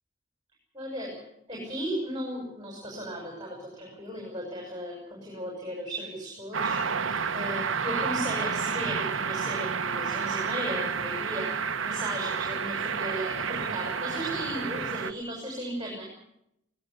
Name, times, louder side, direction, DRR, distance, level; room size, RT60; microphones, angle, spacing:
voice 1, 0.7-1.2 1.5-16.0, equal, 20° right, -1 dB, 6.4 m, -36 dB
sound 1, 6.5-15.1, right 6 dB, 70° right, 1.1 m, -30 dB
19.0 x 18.0 x 8.1 m, 0.78 s
head